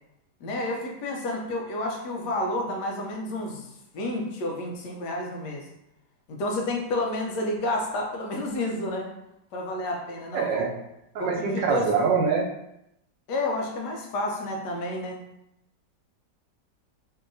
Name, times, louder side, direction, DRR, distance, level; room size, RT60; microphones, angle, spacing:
voice 1, 0.4-5.6 6.3-9.1 9.5-10.7 11.2-11.8 13.3-15.2, left 1 dB, 75° left, 0 dB, 1.2 m, -30 dB
voice 2, 10.3-10.8 11.1-12.5, right 5 dB, 90° right, 1 dB, 1.3 m, -24 dB
3.1 x 2.7 x 2.5 m, 0.83 s
omnidirectional pair, 1.9 m